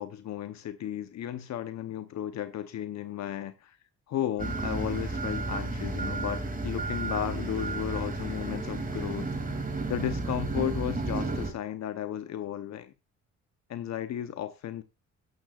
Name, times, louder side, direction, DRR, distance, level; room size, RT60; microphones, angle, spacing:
voice 1, 0.0-3.8 4.1-9.3 9.9-12.9 13.7-14.8, left 11 dB, 65° left, 0.9 m, -34 dB
sound 1, 4.4-11.5, right 2 dB, 30° right, 2.7 m, -32 dB
12.5 x 12.0 x 2.4 m
cardioid pair, 90°, 30 cm